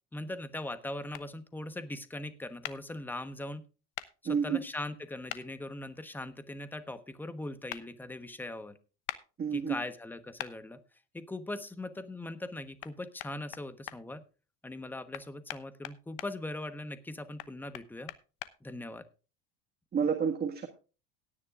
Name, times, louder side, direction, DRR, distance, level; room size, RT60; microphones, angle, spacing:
voice 1, 0.1-3.6 4.2-8.8 9.5-10.8 11.1-14.2 14.6-18.1 18.6-19.0, left 1 dB, 5° left, 12 dB, 1.1 m, -40 dB
sound 1, 1.1-1.3 2.6-2.8 4.0-4.1 5.3-5.4 7.7-7.8 9.1-9.2 10.4-10.5 12.8-12.9 13.2-14.0 15.1-16.3 17.4-18.5, left 16 dB, 70° left, 1.1 m, -40 dB
voice 2, 4.3-4.6 9.4-9.8 19.9-20.7, right 6 dB, 25° right, 4 dB, 1.7 m, -29 dB
18.0 x 9.9 x 2.4 m, 0.33 s
supercardioid pair, 120°, 35 cm